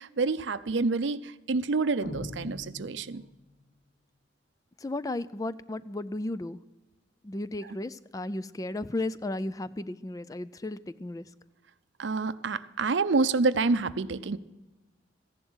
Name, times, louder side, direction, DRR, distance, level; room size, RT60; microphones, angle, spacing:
voice 1, 0.0-3.2 12.0-14.4, right 3 dB, 75° right, 14 dB, 0.6 m, -28 dB
sound 1, 2.0-3.6, left 2 dB, 80° left, 1.0 m, -41 dB
voice 2, 4.8-6.6 7.2-11.3, left 2 dB, 20° left, 15 dB, 0.3 m, -34 dB
15.0 x 11.0 x 6.3 m, 1.1 s
head